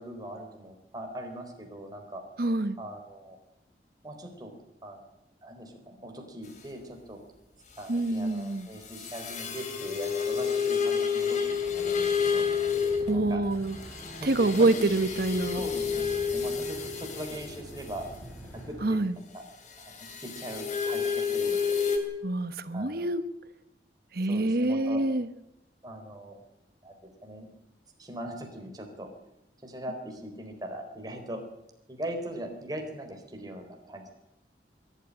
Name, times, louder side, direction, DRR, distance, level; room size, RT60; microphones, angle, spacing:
voice 1, 0.0-2.2 2.8-3.4 4.0-4.5 4.8-5.0 5.4-7.2 7.8-11.4 11.7-12.5 13.1-13.4 14.2-14.8 15.5-18.1 18.7-19.0 19.3-19.4 19.8-21.8 22.7-23.1 24.2-25.0 25.8-26.4 26.8-26.9 27.2-27.5 28.0-29.1 29.6-31.4 31.9-34.1, right 1 dB, 20° right, 3 dB, 4.0 m, -40 dB
voice 2, 2.4-2.8 7.9-8.7 13.0-13.8 14.2-15.6 18.8-19.2 22.2-23.2 24.1-25.3, right 2 dB, 60° right, 12 dB, 1.1 m, -26 dB
sound 1, 9.0-13.2 13.8-17.5 20.0-22.0, left 6 dB, 45° left, 2.8 m, -29 dB
sound 2, 11.4-18.9, equal, 15° left, 4.9 m, -46 dB
22.5 x 12.0 x 9.9 m, 0.87 s
head